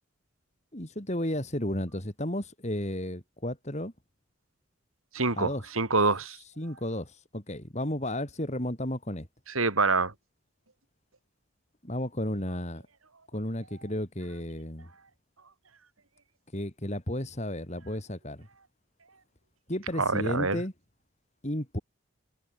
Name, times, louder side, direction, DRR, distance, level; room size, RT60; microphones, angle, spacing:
voice 1, 0.7-3.9 5.4-5.6 6.6-9.3 11.8-12.8 13.3-14.9 16.5-18.5 19.7-20.7 21.4-21.8, left 1 dB, 35° left, 4.3 m, -33 dB
voice 2, 5.1-6.4 9.5-10.1 20.0-20.6, right 3 dB, 85° right, 4.0 m, -26 dB
head